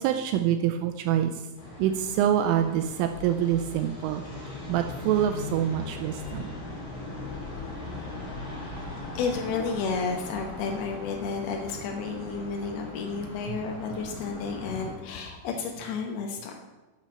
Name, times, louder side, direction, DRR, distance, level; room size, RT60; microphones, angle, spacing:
voice 1, 0.0-1.4 1.8-6.5, right 10 dB, 85° right, 6 dB, 3.0 m, -26 dB
sound 1, 1.5-14.9, left 2 dB, 35° left, 1.4 m, -39 dB
voice 2, 8.9-16.5, left 5 dB, 80° left, 2 dB, 2.2 m, -32 dB
11.5 x 6.1 x 6.8 m, 1.2 s
omnidirectional pair, 5.9 m